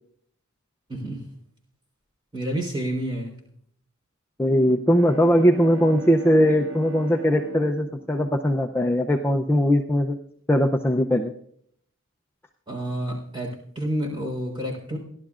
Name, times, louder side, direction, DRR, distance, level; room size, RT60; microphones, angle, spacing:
voice 1, 0.9-1.2 2.3-3.3 12.7-15.0, right 1 dB, 25° right, 1 dB, 4.0 m, -29 dB
voice 2, 4.4-10.2 10.5-11.3, equal, 10° left, 3 dB, 0.5 m, -20 dB
Bowed string instrument, 4.7-9.4, right 3 dB, 60° right, 1.0 m, -40 dB
29.5 x 11.5 x 2.5 m, 0.67 s
head